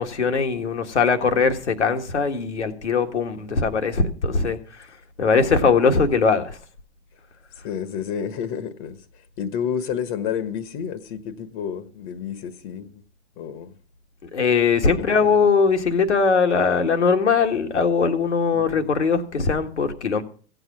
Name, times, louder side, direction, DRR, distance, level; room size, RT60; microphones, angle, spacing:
voice 1, 0.0-4.8 5.2-6.6 14.2-20.2, left 5 dB, 85° left, 1.7 m, -21 dB
voice 2, 7.6-12.9 13.4-13.7 15.0-15.4 18.5-18.9, left 8 dB, 45° left, 1.3 m, -30 dB
15.5 x 8.0 x 6.1 m
hypercardioid pair, 105°, 34 cm